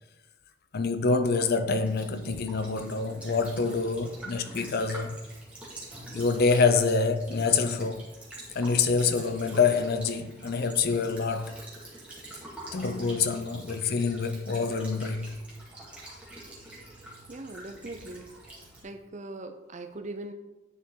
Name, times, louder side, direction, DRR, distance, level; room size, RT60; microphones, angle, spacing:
voice 1, 0.7-5.2 6.1-8.1 8.5-11.6 12.7-15.4, left 4 dB, 50° left, 0.5 m, -26 dB
Child speech kid speaking / Bird vocalization bird call bird song / Stream, 1.8-18.8, right 1 dB, 5° right, 2.1 m, -45 dB
voice 2, 17.3-18.3 18.8-20.3, right 2 dB, 35° right, 0.6 m, -40 dB
9.9 x 5.0 x 3.8 m
head